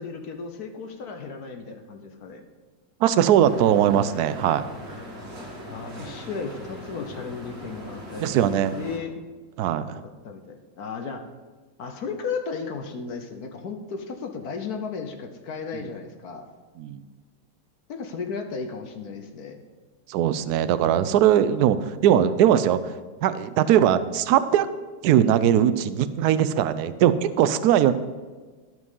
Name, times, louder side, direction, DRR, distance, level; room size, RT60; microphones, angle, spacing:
voice 1, 0.0-2.4 5.7-9.1 10.2-11.2 11.8-16.5 17.9-19.6, left 5 dB, 60° left, 5 dB, 1.2 m, -35 dB
voice 2, 3.0-4.6 8.2-8.8 9.6-10.0 16.8-17.0 20.1-22.8 23.2-24.7 25.0-27.9, right 10 dB, 70° right, 13 dB, 1.0 m, -20 dB
sound 1, 3.4-9.0, equal, 40° right, 2.2 m, -40 dB
12.5 x 6.1 x 5.5 m, 1.4 s
omnidirectional pair, 2.0 m